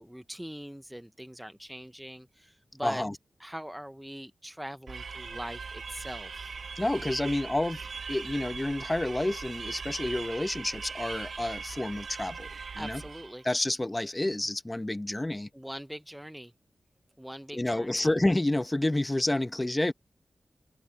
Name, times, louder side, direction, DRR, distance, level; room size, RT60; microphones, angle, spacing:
voice 1, 0.0-3.1 3.4-6.5 12.8-13.5 15.5-16.5 17.2-18.1, equal, 5° right, 0.7 m, -42 dB
voice 2, 2.8-3.1 6.8-7.8 8.1-12.5 12.7-13.0 13.4-15.5 17.5-19.9, left 1 dB, 20° left, 1.1 m, -29 dB
sound 1, 4.9-13.4, right 5 dB, 75° right, 0.9 m, -40 dB
open air
cardioid pair, 65°, 0 cm